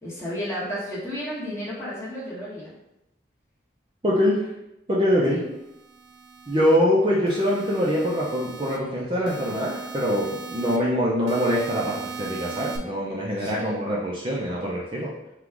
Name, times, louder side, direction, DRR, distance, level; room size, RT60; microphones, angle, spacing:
voice 1, 0.0-2.7 5.3-5.5 13.4-13.9, equal, 15° left, -7 dB, 1.2 m, -33 dB
voice 2, 4.0-4.5 4.9-5.4 6.5-15.1, equal, 25° right, -5 dB, 0.6 m, -24 dB
sound 1, 5.7-6.8 7.3-8.8 9.3-10.8 11.3-12.8, right 5 dB, 75° right, 0.5 m, -38 dB
3.9 x 2.4 x 4.6 m, 0.87 s
head